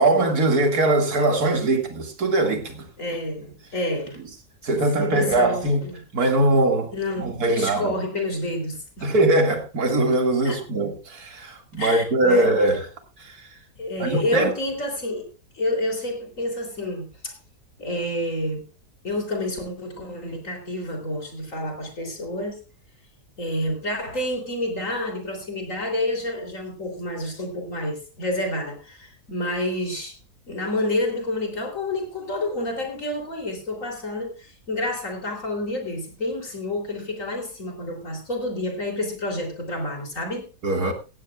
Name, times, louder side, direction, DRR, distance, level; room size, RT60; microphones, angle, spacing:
voice 1, 0.0-2.9 4.6-5.8 6.1-6.9 7.2-7.9 9.0-12.9 13.2-13.4 14.0-14.5 40.6-40.9, right 2 dB, 65° right, 2.8 m, -21 dB
voice 2, 3.0-4.2 4.9-6.0 6.9-9.1 10.4-10.6 11.7-12.5 13.8-15.3 15.5-17.3 17.8-18.6 19.0-22.6 23.4-30.2 30.5-40.5, left 1 dB, 50° left, 3.8 m, -29 dB
16.5 x 15.5 x 2.4 m
omnidirectional pair, 1.8 m